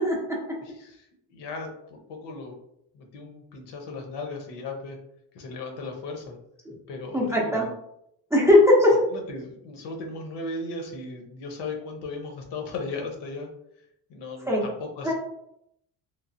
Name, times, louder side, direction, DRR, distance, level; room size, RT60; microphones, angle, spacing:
voice 1, 0.0-0.6 6.7-6.8 7.1-7.7 8.3-9.0 14.5-14.6 15.0-15.1, left 1 dB, 5° right, -3 dB, 0.5 m, -19 dB
voice 2, 0.6-2.6 2.9-5.0 5.3-6.4 6.9-7.7 9.1-13.5 14.1-15.1, left 3 dB, 75° left, 2 dB, 0.8 m, -36 dB
3.1 x 2.0 x 2.5 m, 0.77 s
cardioid pair, 120°, 41 cm